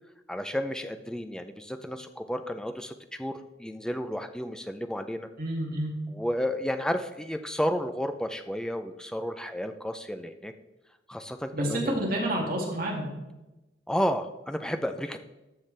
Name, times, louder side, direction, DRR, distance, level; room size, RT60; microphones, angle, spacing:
voice 1, 0.3-5.3 6.1-10.5 11.1-12.0 13.9-15.2, equal, 5° left, 8 dB, 0.4 m, -32 dB
voice 2, 5.4-5.9 11.5-13.1, right 1 dB, 50° right, -3 dB, 2.2 m, -29 dB
13.5 x 5.8 x 3.3 m, 1.0 s
head